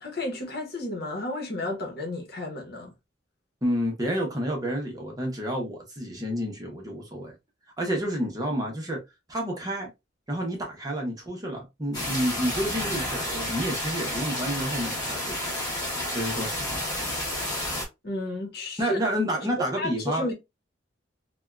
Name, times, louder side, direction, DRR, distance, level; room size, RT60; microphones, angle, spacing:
voice 1, 0.0-2.9 18.0-19.0 19.8-20.3, left 2 dB, 55° left, 0.9 m, -32 dB
voice 2, 3.6-7.3 7.8-9.0 9.3-9.9 10.3-15.6 16.1-16.8 18.8-20.3, equal, 20° right, 0.8 m, -30 dB
sound 1, 11.9-17.8, left 1 dB, 20° left, 1.1 m, -31 dB
3.4 x 2.2 x 2.3 m
head